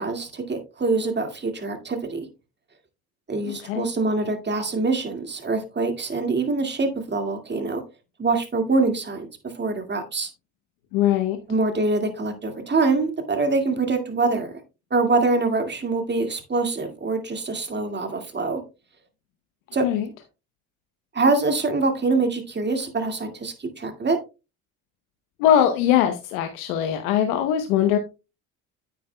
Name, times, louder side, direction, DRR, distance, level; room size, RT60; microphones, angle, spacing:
voice 1, 0.0-2.3 3.3-7.8 8.2-10.3 11.5-14.6 14.9-18.6 19.7-19.9 21.1-24.2, right 3 dB, 25° right, 6 dB, 2.0 m, -24 dB
voice 2, 10.9-11.4 19.8-20.1 25.4-28.0, left 10 dB, 90° left, 7 dB, 1.0 m, -21 dB
9.4 x 8.6 x 2.2 m, 0.28 s
supercardioid pair, 75°, 40 cm